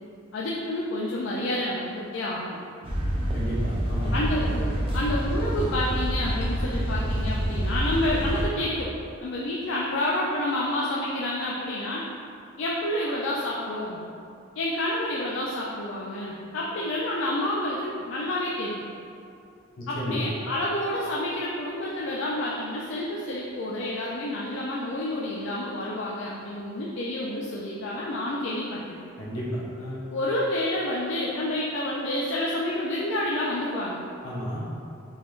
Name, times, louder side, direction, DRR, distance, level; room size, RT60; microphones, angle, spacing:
voice 1, 0.3-2.6 4.1-8.9 9.2-12.0 12.6-14.0 14.6-18.8 19.9-28.9 30.1-34.0, left 1 dB, 65° left, -5 dB, 0.4 m, -29 dB
sound 1, 2.8-8.5, equal, 25° right, 0.4 m, -27 dB
voice 2, 3.3-4.1 19.8-20.2 29.2-29.4 29.8-30.0 34.2-34.6, equal, 85° left, -7 dB, 1.0 m, -32 dB
3.9 x 3.1 x 2.4 m, 2.5 s
head